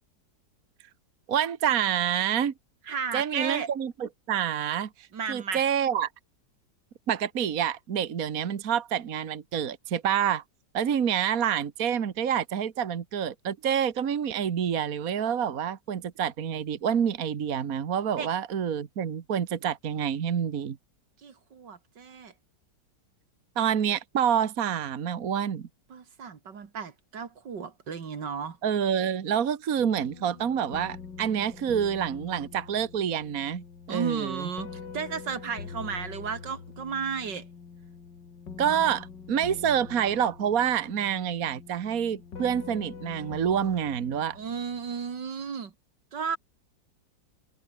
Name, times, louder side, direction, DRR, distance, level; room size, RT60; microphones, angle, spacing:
voice 1, 1.3-2.5 3.1-6.1 7.1-10.4 10.7-20.8 23.5-25.7 28.6-34.5 38.6-44.4, right 8 dB, 55° right, 1.7 m, -27 dB
voice 2, 2.9-3.7 5.1-5.6 18.1-18.3 21.2-22.3 25.9-28.6 33.9-37.5 44.3-45.7 46.1-46.4, right 6 dB, 75° right, 2.7 m, -34 dB
sound 1, 29.8-45.2, left 5 dB, 80° left, 3.1 m, -44 dB
omnidirectional pair, 1.9 m